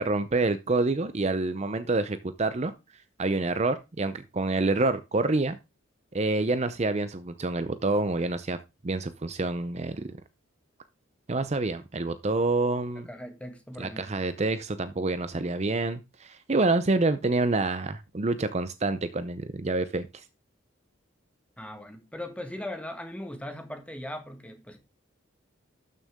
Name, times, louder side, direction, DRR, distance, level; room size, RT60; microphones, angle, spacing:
voice 1, 0.0-2.7 3.2-5.6 6.1-8.6 8.8-10.2 11.3-13.1 13.8-20.2, right 2 dB, 35° right, 0.6 m, -27 dB
voice 2, 13.0-14.2 21.6-24.8, left 1 dB, 5° left, 1.5 m, -39 dB
12.5 x 6.5 x 3.6 m
head